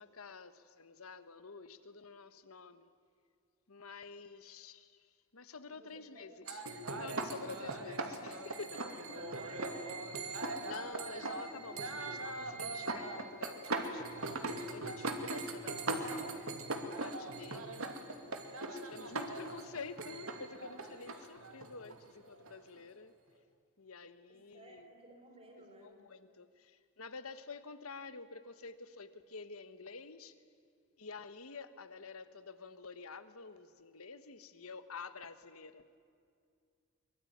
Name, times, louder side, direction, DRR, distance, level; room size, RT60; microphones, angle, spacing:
voice 1, 0.0-2.9 3.7-6.6 7.0-8.9 10.2-16.4 16.8-17.9 18.7-23.1 23.8-24.9 25.8-30.4 31.0-36.0, left 4 dB, 85° left, 12 dB, 1.4 m, -49 dB
voice 2, 5.7-6.3 8.8-9.7 24.3-26.0, right 1 dB, 30° right, 2 dB, 5.7 m, -56 dB
sound 1, 6.5-22.8, right 2 dB, 75° right, 2.4 m, -40 dB
24.0 x 22.5 x 9.5 m, 2.3 s
head